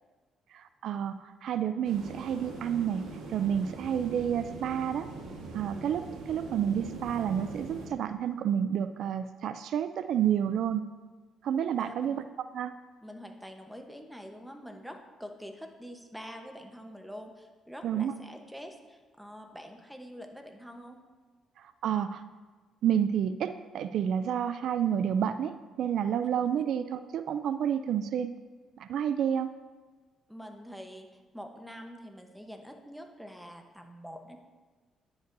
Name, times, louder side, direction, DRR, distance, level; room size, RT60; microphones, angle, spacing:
voice 1, 0.5-3.0 3.3-5.1 5.5-10.8 11.4-12.2 12.5-12.7 17.8-18.1 21.6-22.2 22.8-28.3 28.8-29.5, right 9 dB, 75° right, 11 dB, 0.3 m, -30 dB
sound 1, 1.8-7.9, right 3 dB, 90° right, 1.5 m, -42 dB
voice 2, 11.8-12.2 13.0-21.0 30.3-31.1 31.3-34.4, equal, ahead, 4 dB, 1.0 m, -45 dB
10.5 x 7.8 x 2.7 m, 1.3 s
cardioid pair, 90°, 0 cm